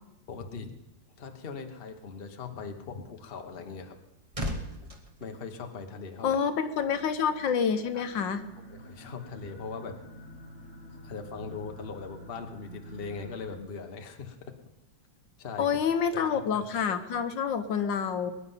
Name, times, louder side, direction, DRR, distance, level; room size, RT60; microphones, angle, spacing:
voice 1, 0.3-0.7 1.2-4.0 5.2-6.4 7.9-8.1 8.8-10.0 11.0-14.5 15.4-15.7 16.1-16.7, left 5 dB, 35° left, 5 dB, 1.1 m, -40 dB
sound 1, 3.8-6.3 6.6-6.8, equal, 20° right, 1.2 m, -39 dB
voice 2, 6.2-8.4 15.6-18.3, left 7 dB, 70° left, 9 dB, 1.6 m, -28 dB
sound 2, 6.7-13.6, right 1 dB, 35° right, 5.0 m, -48 dB
22.5 x 10.0 x 5.6 m, 0.96 s
omnidirectional pair, 2.1 m